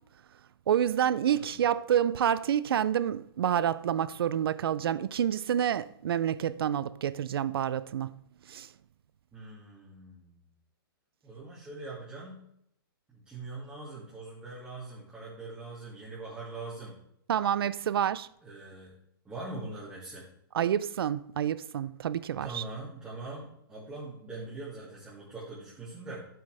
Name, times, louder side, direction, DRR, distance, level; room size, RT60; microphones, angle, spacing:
voice 1, 0.7-8.2 8.5-8.7 17.3-18.3 20.5-22.6, right 10 dB, 75° right, 0.5 m, -28 dB
voice 2, 9.3-10.4 11.2-12.4 13.1-17.0 18.4-18.9 19.2-20.3 22.4-26.3, right 2 dB, 10° right, 2.5 m, -42 dB
11.0 x 7.8 x 3.4 m
hypercardioid pair, 155°, 12 cm